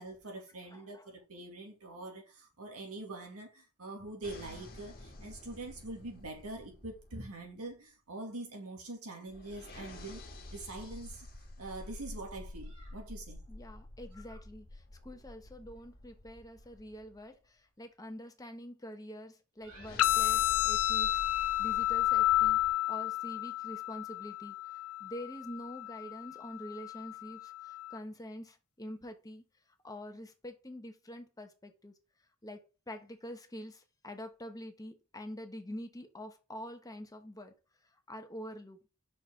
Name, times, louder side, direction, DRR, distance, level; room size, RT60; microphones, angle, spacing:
voice 1, 0.0-10.2 10.5-11.3 11.6-13.4 14.3-14.4 19.6-19.9, right 2 dB, 80° right, 2.2 m, -44 dB
voice 2, 0.7-1.1 13.5-29.4 29.8-32.0 32.4-37.6 38.1-38.8, equal, 15° left, 1.0 m, -46 dB
sound 1, 4.2-7.7 9.3-17.3 19.6-22.7, left 1 dB, 45° left, 1.5 m, -49 dB
sound 2, 20.0-28.0, left 15 dB, 70° left, 0.5 m, -31 dB
5.9 x 4.8 x 3.7 m
head